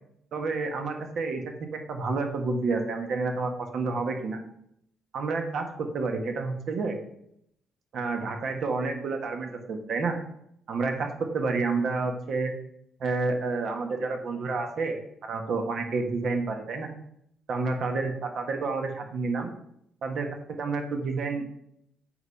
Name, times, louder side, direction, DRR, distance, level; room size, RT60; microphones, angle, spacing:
voice 1, 0.3-1.5 1.9-4.4 5.1-7.0 7.9-10.1 10.7-12.5 13.0-15.0 15.2-16.9 17.5-19.5 20.0-21.4, right 3 dB, 65° right, 4 dB, 1.5 m, -29 dB
7.7 x 5.0 x 5.7 m, 0.75 s
cardioid pair, 90°, 0 cm